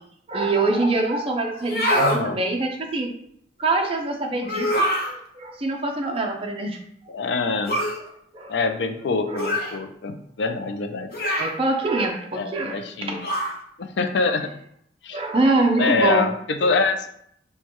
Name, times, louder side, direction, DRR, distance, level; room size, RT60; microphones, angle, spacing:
voice 1, 0.3-3.1 3.6-6.8 8.3-8.5 9.3-9.5 11.4-13.3 15.1-16.3 16.6-16.7, right 2 dB, 30° right, 2 dB, 0.5 m, -24 dB
sound 1, 1.6-2.2 4.4-5.1 7.7-8.0 9.4-9.8 11.1-11.6 13.2-13.6, equal, 55° left, 0.8 m, -24 dB
voice 2, 1.9-2.4 7.1-7.8 8.5-11.1 12.3-13.3 13.8-14.5 15.0-15.2 15.8-17.1, left 4 dB, 75° left, 8 dB, 0.5 m, -25 dB
6.2 x 2.2 x 3.0 m, 0.70 s
head